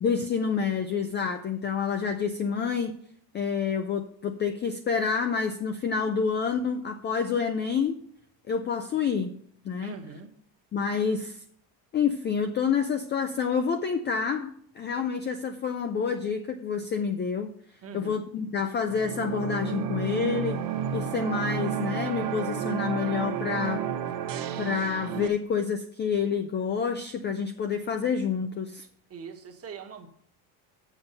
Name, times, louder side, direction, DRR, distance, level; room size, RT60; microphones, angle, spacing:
voice 1, 0.0-3.0 3.3-8.0 8.5-9.9 10.7-11.4 11.9-17.5 17.9-20.6 20.9-23.9 24.6-28.9, left 6 dB, 25° left, 7 dB, 0.3 m, -28 dB
voice 2, 9.8-10.3 17.8-18.2 29.1-30.1, right 6 dB, 30° right, 3 dB, 1.2 m, -42 dB
sound 1, 18.9-25.3, right 9 dB, 45° right, 0.8 m, -31 dB
7.2 x 6.7 x 5.2 m, 0.64 s
cardioid pair, 145°, 48 cm